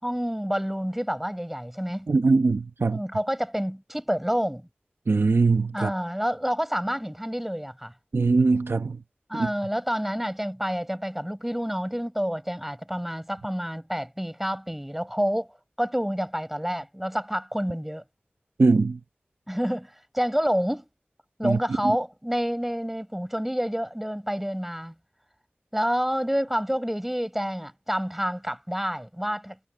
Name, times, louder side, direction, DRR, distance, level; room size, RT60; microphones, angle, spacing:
voice 1, 0.0-2.1 2.8-4.7 5.7-7.9 9.3-18.0 19.5-20.9 21.4-24.9 25.7-29.7, equal, 5° right, 6.5 m, -28 dB
voice 2, 2.1-3.0 5.1-5.9 8.1-9.0 9.3-9.5 18.6-19.0 21.4-22.0, right 3 dB, 85° right, 1.1 m, -22 dB
wide cardioid pair, 65°, 4 cm